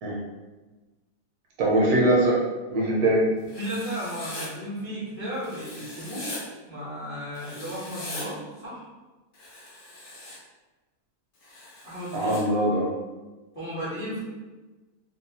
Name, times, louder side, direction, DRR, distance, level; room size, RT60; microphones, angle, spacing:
voice 1, 1.6-2.4 2.7-3.2 12.1-12.9, right 1 dB, 70° right, -3 dB, 1.0 m, -21 dB
Writing, 3.5-4.5 5.4-6.4 7.3-8.3 9.3-10.4 11.4-12.4, left 2 dB, 65° left, 0.9 m, -40 dB
voice 2, 3.6-6.3 6.7-8.8 11.8-12.4 13.5-14.2, equal, 35° left, -10 dB, 0.6 m, -34 dB
2.9 x 2.1 x 2.7 m, 1.2 s
omnidirectional pair, 1.8 m